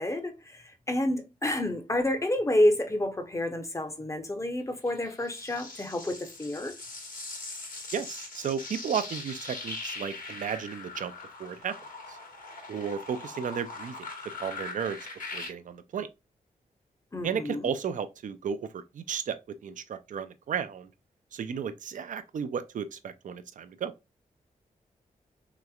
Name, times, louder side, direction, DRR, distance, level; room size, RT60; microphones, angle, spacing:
voice 1, 0.0-6.7 17.1-17.7, left 1 dB, 20° left, 0.7 m, -29 dB
sound 1, 4.9-15.5, left 3 dB, 60° left, 1.3 m, -41 dB
voice 2, 7.9-11.1 11.4-11.7 12.1-12.2 12.7-13.9 14.4-15.0 15.3-16.1 17.2-20.9 21.3-23.9, right 7 dB, 60° right, 0.4 m, -34 dB
3.2 x 3.0 x 2.3 m
cardioid pair, 70°, 15 cm